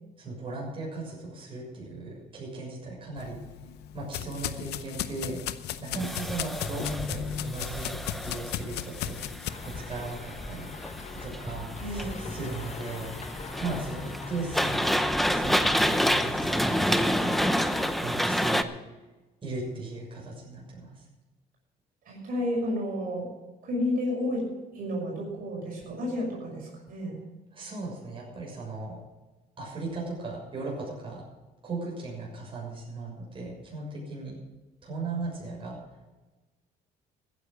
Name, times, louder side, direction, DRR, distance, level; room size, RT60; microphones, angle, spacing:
voice 1, 0.2-3.4 3.9-5.4 5.8-9.5 9.7-10.7 11.1-13.1 13.6-14.9 15.3-18.7 19.4-21.0 27.5-29.0 29.6-31.2 31.6-34.4 34.8-35.8, right 3 dB, 30° right, -3 dB, 6.6 m, -37 dB
sound 1, 3.2-9.5, left 11 dB, 80° left, 0.8 m, -36 dB
sound 2, 6.0-18.6, equal, ahead, 0.8 m, -29 dB
sound 3, 9.5-18.0, left 5 dB, 45° left, 1.1 m, -41 dB
voice 2, 11.8-12.2 22.0-23.3 23.6-27.2, left 1 dB, 60° right, -3 dB, 6.1 m, -31 dB
15.0 x 10.0 x 6.5 m, 1.1 s
cardioid pair, 110°, 17 cm